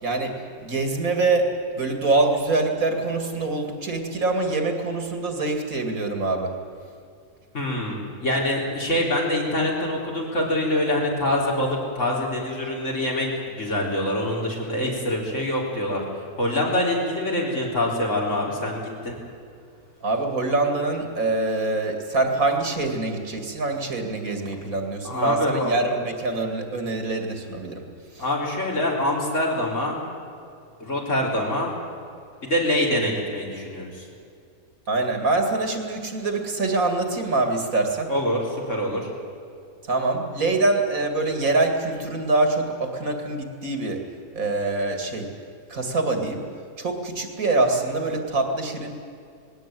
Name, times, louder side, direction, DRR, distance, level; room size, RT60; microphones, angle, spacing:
voice 1, 0.0-0.4 0.6-1.5 1.7-6.5 20.0-27.9 28.1-28.2 34.9-38.1 39.8-44.0 44.3-45.3 45.7-46.4 46.8-48.9, right 3 dB, 65° right, 5 dB, 2.7 m, -24 dB
voice 2, 7.5-16.0 16.4-19.2 25.0-25.7 28.2-30.0 30.8-31.7 32.4-34.1 38.1-39.1, left 1 dB, 50° left, -2 dB, 4.3 m, -25 dB
19.5 x 17.0 x 9.2 m, 2.4 s
omnidirectional pair, 1.6 m